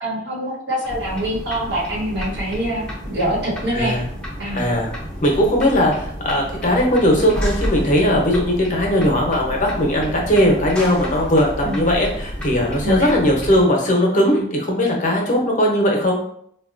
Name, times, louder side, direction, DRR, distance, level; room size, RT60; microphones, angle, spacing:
voice 1, 0.0-4.0 4.4-4.6 11.6-11.8 12.8-13.1, right 1 dB, 70° right, -4 dB, 1.1 m, -24 dB
sound 1, 0.8-13.6, equal, 5° left, 0.6 m, -30 dB
voice 2, 3.7-4.0 4.5-4.9 5.2-16.2, equal, 40° left, 0 dB, 0.7 m, -18 dB
3.9 x 2.2 x 2.4 m, 0.68 s
head